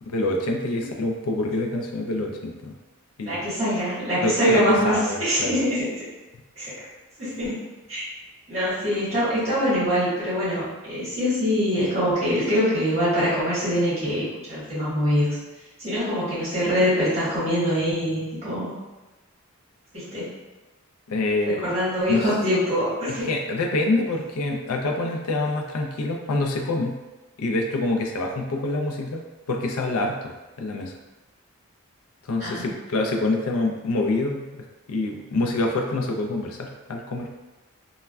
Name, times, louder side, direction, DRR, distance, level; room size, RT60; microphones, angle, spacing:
voice 1, 0.0-2.7 3.2-3.4 4.2-5.5 21.1-21.8 22.1-22.2 23.3-27.0 27.4-29.2 29.5-30.2 30.6-30.9 32.3-37.3, left 2 dB, 80° left, 2 dB, 0.4 m, -26 dB
voice 2, 3.2-5.8 6.6-6.7 7.2-7.6 7.9-8.0 8.5-15.4 15.8-18.7 19.9-20.3 21.6-23.3 32.4-32.7, equal, 30° right, -11 dB, 1.1 m, -24 dB
3.2 x 2.1 x 2.3 m, 1.1 s
head